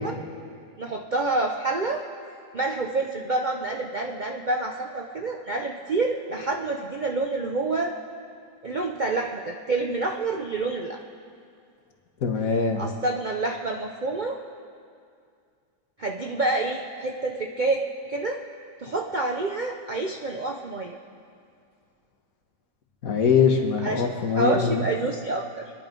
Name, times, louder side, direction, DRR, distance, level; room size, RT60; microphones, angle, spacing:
voice 1, 0.8-2.0 2.5-7.9 8.6-11.0 12.8-14.4 16.0-18.4 18.8-21.0 23.8-24.1 24.4-25.7, right 3 dB, 80° right, 1 dB, 0.4 m, -28 dB
voice 2, 12.2-12.8 23.0-24.8, left 6 dB, 50° left, 3 dB, 1.7 m, -22 dB
25.5 x 10.5 x 5.3 m, 2.3 s
omnidirectional pair, 2.0 m